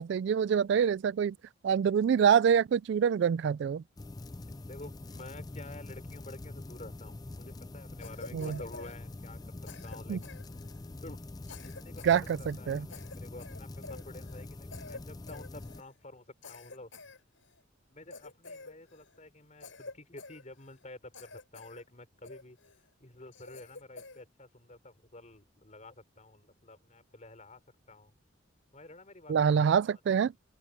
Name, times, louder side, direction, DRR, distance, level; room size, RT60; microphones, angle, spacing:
voice 1, 0.0-1.3 1.6-3.8 8.3-8.5 10.1-10.2 12.0-12.8 29.3-30.3, right 7 dB, 60° right, 0.3 m, -26 dB
sound 1, 4.0-15.8, left 2 dB, 20° left, 0.4 m, -44 dB
voice 2, 4.7-10.2 11.0-11.2 11.6-16.9 17.9-22.6 23.0-27.6 27.9-28.1 28.7-29.5, left 2 dB, 40° left, 5.0 m, -50 dB
Cough, 8.0-9.4 9.7-10.9 11.4-12.2 12.5-12.6 12.9-14.4 14.7-15.0 15.3-15.9 16.4-17.6 18.1-19.2 19.6-20.8 21.1-21.8 22.2-22.8 23.3-24.2, left 3 dB, 75° left, 5.8 m, -49 dB
open air
head